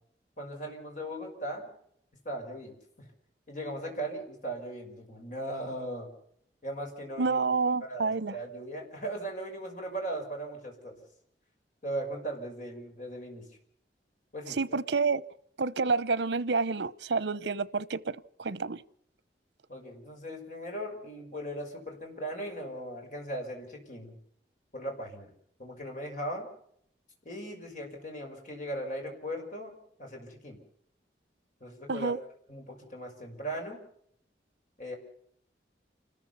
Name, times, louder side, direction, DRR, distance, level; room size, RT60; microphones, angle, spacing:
voice 1, 0.4-1.7 2.2-3.1 3.5-6.1 6.6-7.4 7.9-11.0 11.8-13.5 14.3-14.6 19.7-24.2 24.7-25.3 25.6-26.5 27.2-29.7 30.0-30.6 31.6-32.1 32.5-33.8 34.8-35.0, right 1 dB, 45° left, 5.9 m, -38 dB
voice 2, 7.2-8.3 14.5-15.2 15.6-18.8 31.9-32.2, right 4 dB, 85° right, 0.8 m, -29 dB
29.5 x 14.0 x 7.1 m
head